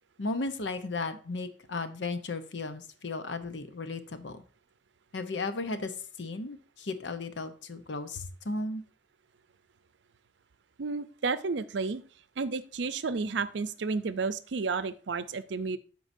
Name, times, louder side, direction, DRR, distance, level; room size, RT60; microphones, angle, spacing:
voice 1, 0.2-4.4 5.1-5.9 6.2-8.8, left 3 dB, 80° left, 10 dB, 0.8 m, -35 dB
voice 2, 10.8-12.0 12.4-15.8, right 4 dB, 80° right, 14 dB, 0.5 m, -31 dB
13.5 x 4.7 x 2.7 m, 0.40 s
head